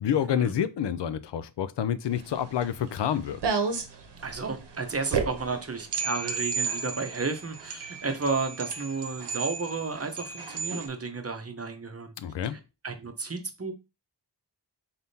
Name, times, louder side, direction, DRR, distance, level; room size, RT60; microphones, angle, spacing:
voice 1, 0.0-3.4 12.2-12.6, left 9 dB, 80° left, 0.5 m, -28 dB
sound 1, 2.1-10.9, right 5 dB, 75° right, 0.9 m, -33 dB
voice 2, 4.2-12.1 12.4-13.7, right 4 dB, 35° right, 0.8 m, -32 dB
4.1 x 3.5 x 2.7 m
wide cardioid pair, 60°, 42 cm